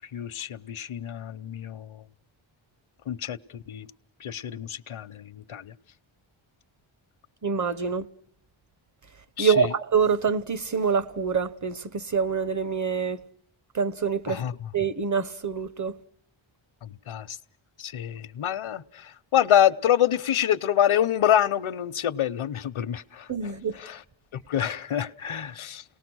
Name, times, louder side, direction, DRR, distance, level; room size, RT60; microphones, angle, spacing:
voice 1, 0.1-2.0 3.1-3.9 4.2-5.7 9.4-9.7 14.3-14.5 16.8-17.4 17.8-23.3 23.8-24.0 24.3-25.8, left 10 dB, 75° left, 0.9 m, -26 dB
voice 2, 7.4-8.1 9.4-13.2 13.7-14.4 14.7-16.0 23.3-23.8, right 6 dB, 35° right, 0.9 m, -26 dB
29.5 x 19.0 x 6.2 m
wide cardioid pair, 100°, 49 cm